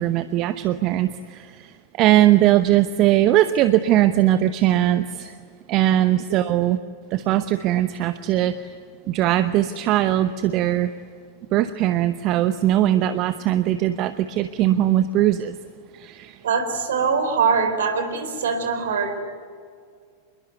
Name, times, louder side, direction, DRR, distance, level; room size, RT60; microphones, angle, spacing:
voice 1, 0.0-5.4 5.7-6.8 7.1-8.7 9.1-10.9 11.5-15.5 15.9-16.4, right 13 dB, 40° right, 12 dB, 0.9 m, -20 dB
voice 2, 16.4-19.2, right 5 dB, 60° right, 8 dB, 4.4 m, -22 dB
27.5 x 22.0 x 9.5 m, 2.1 s
figure-of-eight pair, 90°, 0 cm